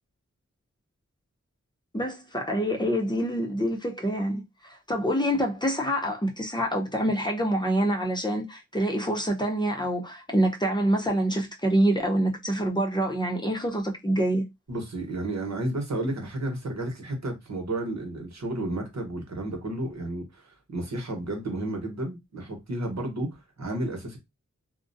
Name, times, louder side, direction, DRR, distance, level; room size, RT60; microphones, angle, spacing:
voice 1, 1.9-14.4, right 1 dB, 15° left, 0.7 m, -26 dB
voice 2, 14.7-24.2, right 1 dB, 65° right, 1.0 m, -32 dB
2.4 x 2.1 x 2.6 m
cardioid pair, 40°, 30 cm